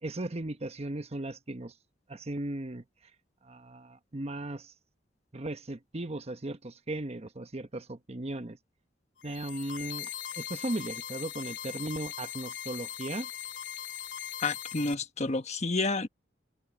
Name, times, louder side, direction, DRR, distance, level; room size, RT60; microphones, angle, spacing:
voice 1, 0.0-1.7 2.1-2.8 3.4-4.7 5.3-8.6 9.2-13.3, right 2 dB, 35° right, 1.0 m, -37 dB
sound 1, 9.2-14.9, left 10 dB, 80° left, 1.2 m, -40 dB
voice 2, 14.4-16.1, left 3 dB, 40° left, 1.2 m, -30 dB
head